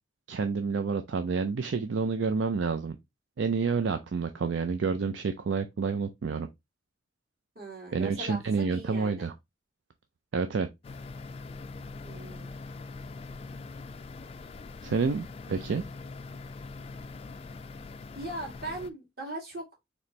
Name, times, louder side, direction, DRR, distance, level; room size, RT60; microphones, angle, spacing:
voice 1, 0.3-3.0 3.4-6.5 7.9-9.3 10.3-10.7 14.8-15.8, right 5 dB, 80° right, 0.4 m, -29 dB
voice 2, 7.6-9.3 12.0-12.5 18.1-19.7, right 1 dB, 55° right, 2.3 m, -39 dB
sound 1, 10.8-18.9, left 3 dB, 30° left, 0.3 m, -43 dB
4.2 x 3.0 x 3.1 m
head